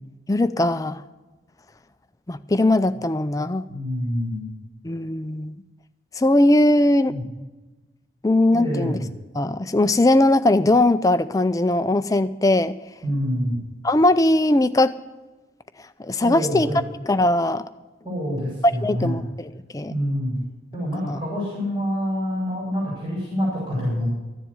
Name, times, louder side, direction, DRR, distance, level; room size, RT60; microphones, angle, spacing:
voice 1, 0.3-1.0 2.3-3.6 4.8-5.5 6.2-7.2 8.2-9.0 9.3-12.7 13.8-14.9 16.0-16.7 17.1-17.6 18.8-19.9 21.0-21.2, left 1 dB, 20° left, 12 dB, 0.4 m, -20 dB
voice 2, 3.7-4.5 7.1-7.2 8.5-9.1 13.0-13.6 16.2-16.8 18.0-19.1 19.9-20.4 20.7-24.0, equal, 30° right, -8 dB, 5.8 m, -26 dB
14.0 x 7.4 x 8.2 m, 1.2 s
head